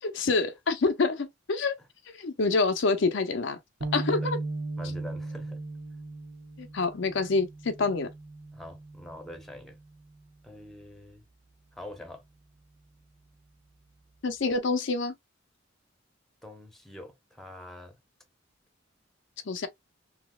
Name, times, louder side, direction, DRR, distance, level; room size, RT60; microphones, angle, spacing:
voice 1, 0.0-1.7 2.1-3.6 3.9-4.4 6.6-8.1 14.2-15.1 19.5-19.7, left 3 dB, 65° left, 0.5 m, -27 dB
sound 1, 3.8-10.2, right 2 dB, 75° right, 1.2 m, -38 dB
voice 2, 4.8-5.6 8.5-9.8 10.4-11.2 11.7-12.2 16.4-18.0, left 1 dB, ahead, 0.9 m, -45 dB
4.0 x 2.7 x 2.2 m
head